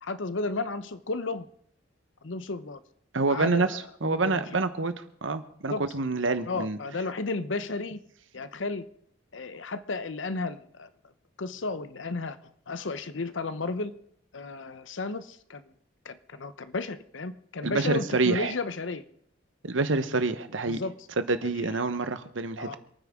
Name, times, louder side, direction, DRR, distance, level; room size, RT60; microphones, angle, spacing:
voice 1, 0.0-1.5 2.2-2.8 3.3-4.6 5.7-5.8 6.5-8.0 8.3-8.9 9.3-10.9 11.4-12.4 12.7-13.9 14.3-15.6 16.0-19.0 20.7-20.9 22.6-22.8, left 3 dB, 75° left, 13 dB, 0.8 m, -33 dB
voice 2, 3.1-6.8 17.6-18.5 19.6-20.8 21.2-22.8, right 3 dB, 85° right, 10 dB, 1.1 m, -27 dB
27.0 x 9.6 x 3.7 m, 0.68 s
head